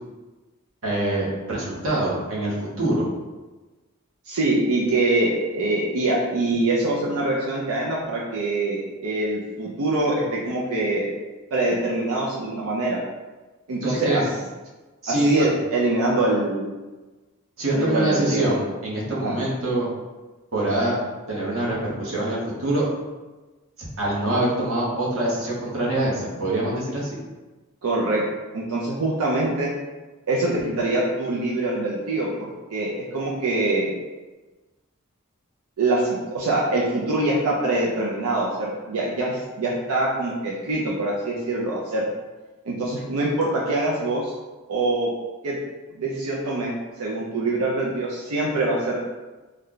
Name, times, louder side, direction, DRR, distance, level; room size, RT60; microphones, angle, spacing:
voice 1, 0.8-3.1 13.8-14.2 15.0-15.5 17.6-19.9 20.5-21.0 21.3-22.9 24.0-27.1, right 1 dB, 65° right, -5 dB, 1.0 m, -24 dB
voice 2, 4.3-11.1 11.5-13.0 13.7-14.2 15.1-16.7 17.7-18.5 19.2-19.4 27.8-28.2 28.5-29.7 30.3-33.9 35.8-42.1 42.7-44.3 44.7-45.1 45.4-45.6 46.0-46.7 47.0-49.0, right 2 dB, 90° right, -4 dB, 0.5 m, -24 dB
3.2 x 2.2 x 3.8 m, 1.2 s
head